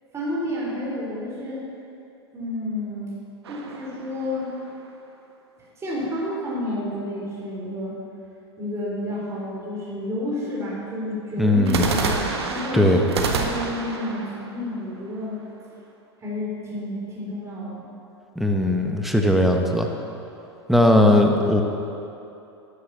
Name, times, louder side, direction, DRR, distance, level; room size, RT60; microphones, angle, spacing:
voice 1, 0.1-1.7 2.3-3.2 3.5-4.5 5.8-8.0 8.6-12.1 12.5-15.4 16.2-17.9, left 1 dB, 20° right, -5 dB, 3.9 m, -30 dB
sound 1, 3.4-4.9 11.7-15.6, right 4 dB, 70° right, 1.6 m, -29 dB
voice 2, 11.4-11.9 12.7-13.0 18.4-19.9 20.7-21.6, left 1 dB, ahead, 3 dB, 1.4 m, -18 dB
12.5 x 10.0 x 6.9 m, 2.8 s
figure-of-eight pair, 95°, 14 cm